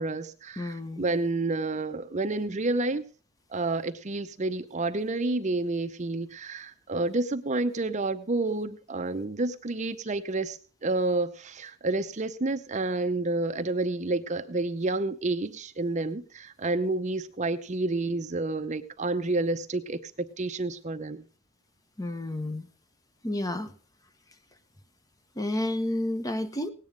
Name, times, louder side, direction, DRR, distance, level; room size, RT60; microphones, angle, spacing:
voice 1, 0.0-3.0 3.5-21.2, right 2 dB, 35° right, 9 dB, 0.7 m, -29 dB
voice 2, 0.6-1.1 22.0-22.7 23.2-23.7 25.4-26.7, left 1 dB, 20° left, 10 dB, 0.9 m, -30 dB
18.0 x 9.1 x 5.1 m, 0.39 s
head